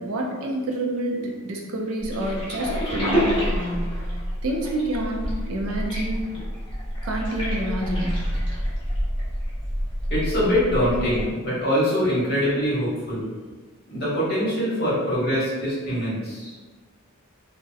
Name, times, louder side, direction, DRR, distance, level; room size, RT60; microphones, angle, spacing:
voice 1, 0.0-4.0 4.4-6.2 7.0-8.3, right 1 dB, 75° right, 0 dB, 0.4 m, -28 dB
sound 1, 2.0-11.3, equal, 25° left, 0.7 m, -28 dB
voice 2, 10.1-13.2 13.9-16.5, equal, 50° left, -9 dB, 1.1 m, -23 dB
2.7 x 2.0 x 2.3 m, 1.4 s
head